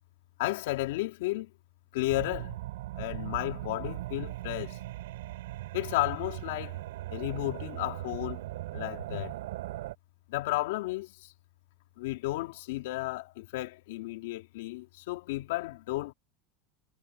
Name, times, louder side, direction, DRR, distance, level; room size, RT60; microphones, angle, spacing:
voice 1, 0.4-1.5 1.9-2.5 3.0-4.8 5.7-6.8 7.1-8.4 8.7-9.3 10.3-11.3 12.0-16.1, left 18 dB, 65° left, 3.5 m, -33 dB
sound 1, 2.1-10.0, right 16 dB, 85° right, 6.2 m, -39 dB
supercardioid pair, 180°, 0 cm